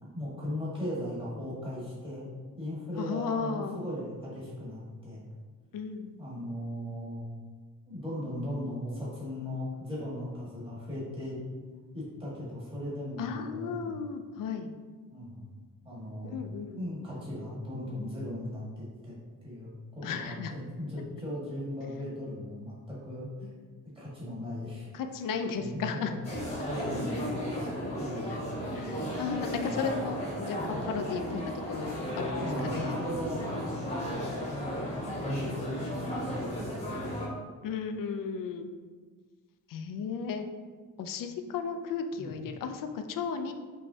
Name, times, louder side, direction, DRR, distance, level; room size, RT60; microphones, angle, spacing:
voice 1, 0.0-2.3 2.5-5.2 6.2-7.2 7.9-11.4 11.9-14.0 15.1-15.5 15.8-16.4 16.7-19.1 19.4-23.5 23.9-24.9 25.6-26.2 26.7-28.5 29.4-29.9 30.5-30.8 32.3-33.4 33.8-37.1 42.2-42.3, left 1 dB, 15° right, -8 dB, 1.4 m, -38 dB
voice 2, 3.0-3.8 5.7-6.2 13.2-14.7 16.2-16.8 20.0-20.5 24.9-26.1 28.2-28.4 28.7-33.0 37.6-38.7 39.7-40.5 41.0-43.5, left 6 dB, 70° left, 7 dB, 0.5 m, -35 dB
sound 1, 26.2-37.3, equal, 20° left, 1.0 m, -35 dB
5.5 x 3.1 x 2.7 m, 1.5 s
wide cardioid pair, 165°, 34 cm